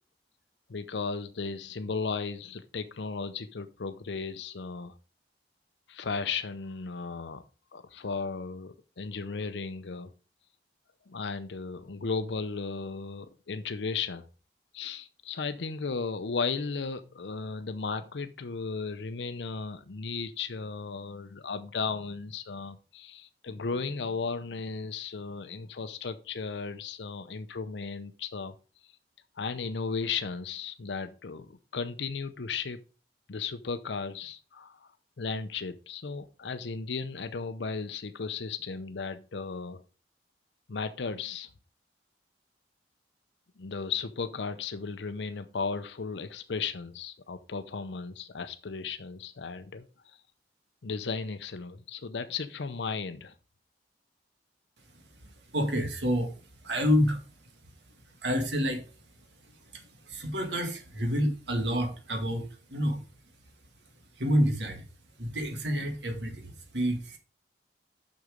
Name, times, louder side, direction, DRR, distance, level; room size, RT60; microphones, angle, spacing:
voice 1, 0.7-4.9 5.9-7.4 7.7-10.1 11.1-14.3 14.7-28.5 29.4-32.8 33.3-34.9 35.2-39.8 40.7-41.5 43.6-50.2 50.8-53.3, left 4 dB, 80° left, 10 dB, 0.6 m, -35 dB
voice 2, 55.2-57.2 58.2-58.8 59.4-63.0 64.2-64.9 65.2-67.2, equal, 80° right, 5 dB, 1.9 m, -29 dB
6.6 x 6.2 x 5.1 m, 0.35 s
head